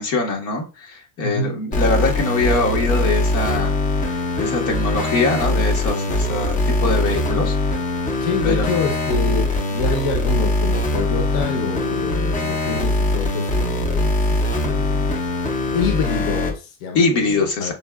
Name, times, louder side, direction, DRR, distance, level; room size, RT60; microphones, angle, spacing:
voice 1, 0.0-3.7 4.1-7.6 8.4-8.7 16.9-17.7, left 3 dB, 85° left, 1 dB, 1.5 m, -22 dB
voice 2, 1.2-1.5 8.2-15.1 15.7-17.7, left 5 dB, 55° left, 3 dB, 0.9 m, -26 dB
sound 1, 1.7-16.5, left 2 dB, 20° left, 0.4 m, -22 dB
6.7 x 2.3 x 2.3 m, 0.33 s
cardioid pair, 145°, 42 cm